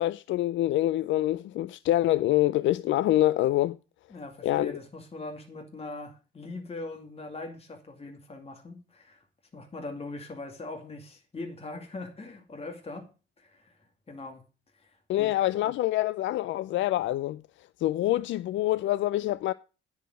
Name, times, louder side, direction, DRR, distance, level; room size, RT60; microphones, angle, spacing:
voice 1, 0.0-3.8 4.4-4.7 15.1-17.4 17.8-19.5, left 15 dB, 70° left, 0.4 m, -26 dB
voice 2, 4.1-9.2 9.5-13.1 13.4-13.7 14.1-14.4 14.8-15.3, left 2 dB, 30° left, 2.3 m, -41 dB
10.0 x 5.0 x 7.7 m
cardioid pair, 90°, 20 cm